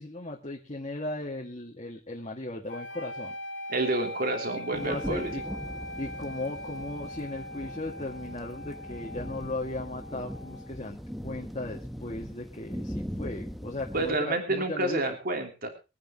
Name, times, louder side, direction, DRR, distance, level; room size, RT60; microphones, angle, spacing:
voice 1, 0.0-3.3 4.7-5.4 6.0-15.2, left 2 dB, 35° left, -1 dB, 2.0 m, -37 dB
sound 1, 2.7-10.8, left 1 dB, 80° left, 2.2 m, -41 dB
voice 2, 3.7-5.3 13.9-15.7, right 2 dB, 50° right, 4 dB, 3.1 m, -29 dB
sound 2, 4.7-14.2, equal, ahead, 1.0 m, -40 dB
23.5 x 9.6 x 3.0 m, 0.29 s
head